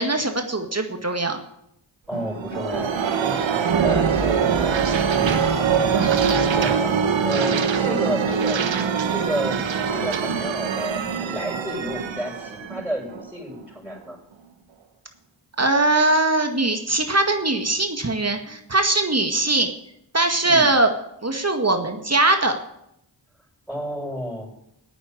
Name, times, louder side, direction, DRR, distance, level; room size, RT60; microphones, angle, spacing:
voice 1, 0.0-1.4 15.6-19.7 20.1-20.9 21.2-22.5, right 2 dB, 35° right, 5 dB, 2.0 m, -21 dB
voice 2, 2.1-2.9 3.2-3.5 3.8-4.8 5.1-9.6 9.9-14.2 20.4-20.7 23.7-24.5, equal, ahead, -4 dB, 6.5 m, -31 dB
sound 1, 2.1-13.6, right 6 dB, 85° right, 1.3 m, -23 dB
12.0 x 9.0 x 9.6 m, 0.79 s
cardioid pair, 45°, 45 cm